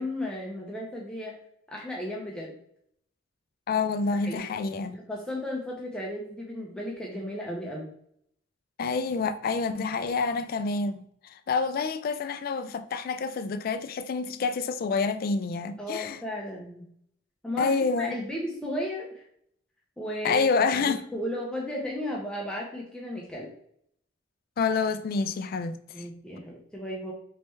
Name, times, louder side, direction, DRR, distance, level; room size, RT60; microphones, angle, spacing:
voice 1, 0.0-1.3 1.7-2.5 4.2-4.4 4.9-7.9 15.8-16.8 17.4-19.2 20.0-23.5 25.9-27.1, left 1 dB, 5° left, 0.6 m, -35 dB
voice 2, 3.7-5.0 8.8-11.0 11.2-16.2 17.6-18.2 20.2-21.0 24.6-25.8, left 4 dB, 50° left, 0.3 m, -27 dB
4.3 x 3.3 x 3.1 m
head